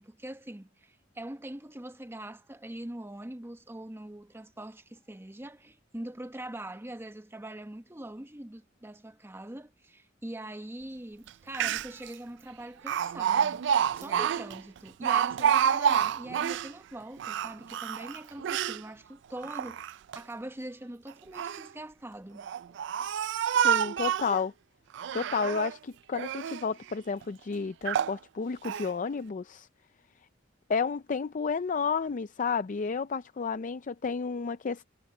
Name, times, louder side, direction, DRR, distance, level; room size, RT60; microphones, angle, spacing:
voice 1, 0.0-13.7 13.9-22.9, right 1 dB, 10° right, 0.9 m, -43 dB
Speech, 11.3-11.4 11.5-12.1 12.9-16.7 17.2-18.8 19.4-20.2 21.1-21.7 22.4-24.4 24.9-25.8 26.1-26.7 27.2-27.3 27.8-28.2 28.6-28.9, right 8 dB, 65° right, 0.3 m, -28 dB
voice 2, 23.5-24.5 25.1-29.7 30.7-34.9, left 5 dB, 40° left, 0.4 m, -31 dB
head